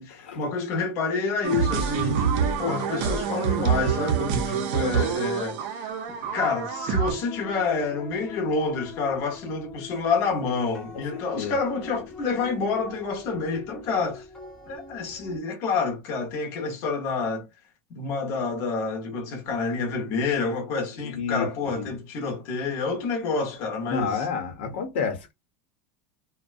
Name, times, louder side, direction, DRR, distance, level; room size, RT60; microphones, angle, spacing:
voice 1, 0.0-2.3 2.6-14.3 14.7-17.5 17.9-24.2, left 4 dB, 40° left, 0.8 m, -28 dB
sound 1, 1.4-7.1, right 7 dB, 45° right, 0.5 m, -26 dB
sound 2, 6.4-15.4, left 4 dB, 10° left, 0.5 m, -43 dB
voice 2, 10.9-11.6 21.0-22.0 23.9-25.3, left 5 dB, 80° left, 0.9 m, -30 dB
2.5 x 2.2 x 2.4 m
supercardioid pair, 180°, 6 cm